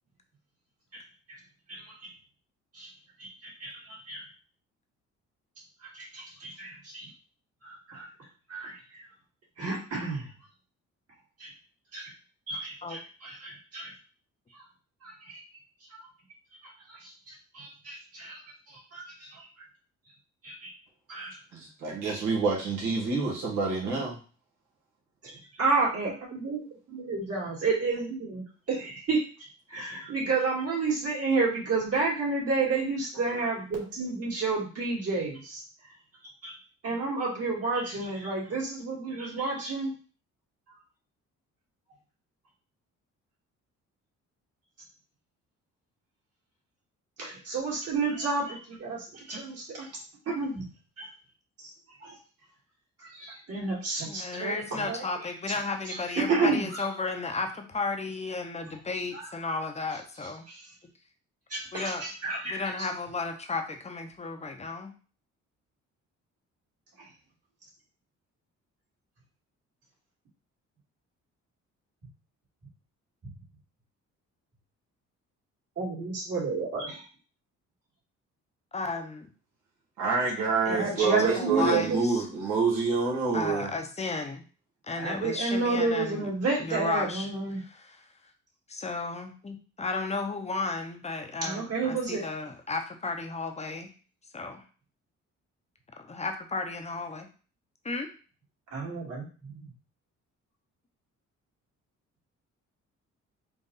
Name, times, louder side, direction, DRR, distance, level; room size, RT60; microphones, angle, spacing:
voice 1, 1.7-2.1 2.7-2.9 3.2-4.2 5.8-7.1 7.6-8.1 8.5-9.0 9.6-10.3 11.4-11.5 11.9-12.1 12.5-13.9 14.5-14.6 15.0-15.4 15.9-16.0 16.6-18.4 18.9-19.5 20.4-20.7 21.1-21.4 25.2-26.6 26.9-29.2 29.7-35.6 36.4-36.5 36.8-39.9 47.2-49.9 50.3-50.6 51.0-51.1 52.0-52.2 53.0-55.0 55.5-55.6 55.9-56.8 59.1-59.5 60.5-60.7 61.5-62.9 67.0-67.1 75.8-77.0 80.7-82.0 85.0-87.6 91.4-92.2 98.7-99.7, right 3 dB, 50° right, -4 dB, 2.2 m, -31 dB
voice 2, 21.5-24.2 80.0-83.7, right 4 dB, 80° right, -3 dB, 1.8 m, -27 dB
voice 3, 54.0-60.4 61.7-62.0 62.5-64.9 78.7-79.3 80.7-82.2 83.3-84.4 84.8-86.3 86.6-87.3 87.6-88.1 88.7-93.9 94.3-94.6 96.0-97.3 97.8-98.1, left 3 dB, 20° left, 4 dB, 0.8 m, -34 dB
4.1 x 2.5 x 3.8 m, 0.37 s
cardioid pair, 90°, 30 cm